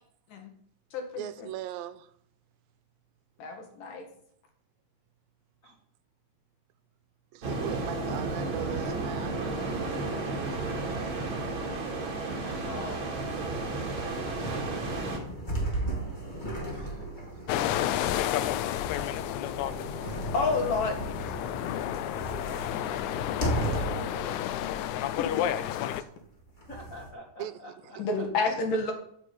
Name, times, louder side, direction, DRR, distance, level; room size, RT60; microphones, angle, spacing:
voice 1, 1.2-2.1 7.3-11.2 16.7-16.9 23.6-24.4 27.4-27.6 28.5-28.6, right 12 dB, 85° right, 2.4 m, -40 dB
voice 2, 3.4-4.1 12.6-13.0 20.3-21.4 24.4-24.7 25.0-25.3 25.7-26.0 28.0-28.9, left 3 dB, 70° left, 3.5 m, -30 dB
sound 1, 7.4-15.2, right 3 dB, 40° right, 2.6 m, -33 dB
sound 2, 13.2-24.2 24.7-24.8 26.2-27.1, right 1 dB, 15° left, 1.9 m, -36 dB
sound 3, 17.5-26.0, left 11 dB, 85° left, 1.6 m, -31 dB
voice 3, 26.7-28.5, equal, 45° left, 1.0 m, -47 dB
9.1 x 7.4 x 8.7 m
omnidirectional pair, 4.1 m